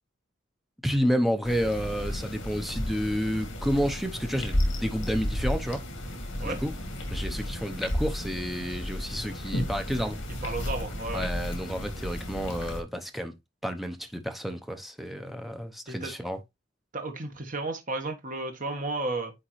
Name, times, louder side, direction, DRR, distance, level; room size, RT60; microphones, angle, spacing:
voice 1, 0.8-5.8 6.4-6.7 7.1-10.2 11.1-13.3 13.6-16.4, equal, ahead, 0.8 m, -30 dB
sound 1, 1.4-12.8, left 1 dB, 70° left, 2.2 m, -33 dB
voice 2, 10.4-11.3 15.9-16.1 16.9-19.3, right 2 dB, 40° right, 1.4 m, -33 dB
9.8 x 3.7 x 3.1 m
head